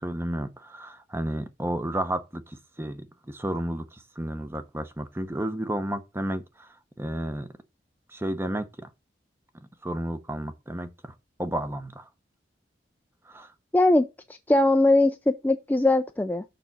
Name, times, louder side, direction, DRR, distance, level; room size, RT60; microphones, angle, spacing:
voice 1, 0.0-7.5 8.1-8.9 9.5-11.1 11.4-12.1 13.2-13.5, right 1 dB, 15° right, 0.8 m, -32 dB
voice 2, 13.7-14.1 14.5-16.4, left 2 dB, 10° left, 0.4 m, -20 dB
6.8 x 6.0 x 4.1 m
head